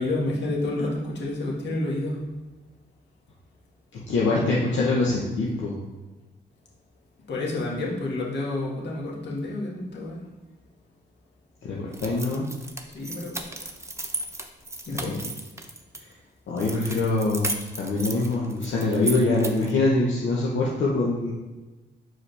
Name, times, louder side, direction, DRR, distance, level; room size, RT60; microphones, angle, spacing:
voice 1, 0.0-2.2 7.3-10.2 12.9-13.4 14.8-15.2, left 2 dB, 65° left, -4 dB, 1.9 m, -29 dB
voice 2, 4.1-5.8 11.7-12.5 14.9-15.2 16.5-21.3, left 2 dB, 80° left, -5 dB, 1.0 m, -24 dB
sound 1, 11.9-16.0 16.6-19.8, right 2 dB, 15° right, 0.8 m, -35 dB
6.1 x 4.8 x 3.4 m, 1.2 s
cardioid pair, 60°, 19 cm